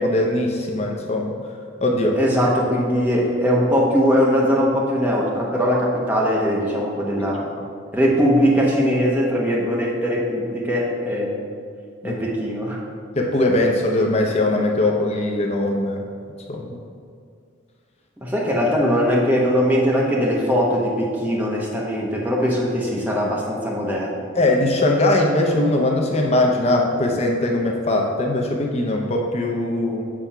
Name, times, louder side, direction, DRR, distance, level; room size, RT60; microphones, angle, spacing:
voice 1, 0.0-1.4 1.8-2.2 12.0-12.2 13.2-16.0 16.5-16.8 24.4-30.1, left 1 dB, 30° left, 1 dB, 0.5 m, -20 dB
voice 2, 2.1-7.5 7.9-11.4 12.0-12.8 18.2-24.2, equal, 10° right, -4 dB, 0.9 m, -20 dB
7.4 x 3.4 x 5.6 m, 2.2 s
head